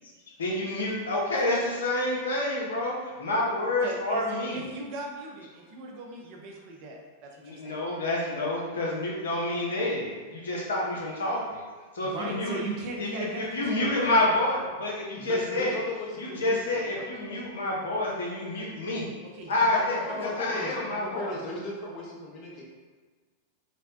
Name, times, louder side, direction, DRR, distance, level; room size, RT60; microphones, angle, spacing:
voice 1, 0.4-4.6 7.4-11.6 11.9-12.6 13.0-15.7 16.2-19.1 19.5-21.3, left 2 dB, 75° left, -4 dB, 0.7 m, -28 dB
voice 2, 3.8-7.8 12.0-14.3 19.2-19.7 20.1-20.9, right 2 dB, 50° right, 0 dB, 0.5 m, -38 dB
voice 3, 15.2-17.1 19.7-22.6, left 2 dB, 40° left, -3 dB, 0.8 m, -37 dB
3.3 x 2.1 x 2.5 m, 1.4 s
figure-of-eight pair, 95°, 0 cm